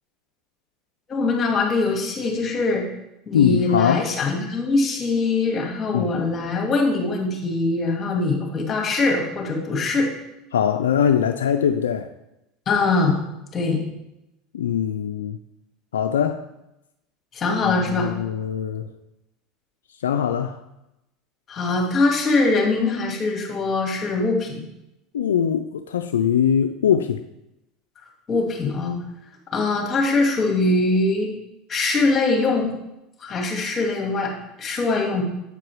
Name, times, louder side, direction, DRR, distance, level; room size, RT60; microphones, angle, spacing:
voice 1, 1.1-2.9 3.3-10.1 12.7-13.2 13.5-13.8 17.3-18.1 21.5-24.6 28.3-29.0 29.5-31.3 31.7-32.7 33.2-34.3 34.6-35.2, left 3 dB, 35° left, 1 dB, 2.0 m, -22 dB
voice 2, 3.3-4.1 5.9-6.3 10.0-10.1 10.5-12.1 14.5-15.4 15.9-16.4 17.9-18.9 20.0-20.6 25.1-27.2, left 8 dB, 90° left, 7 dB, 0.3 m, -22 dB
8.1 x 4.8 x 4.7 m, 0.89 s
hypercardioid pair, 90°, 0 cm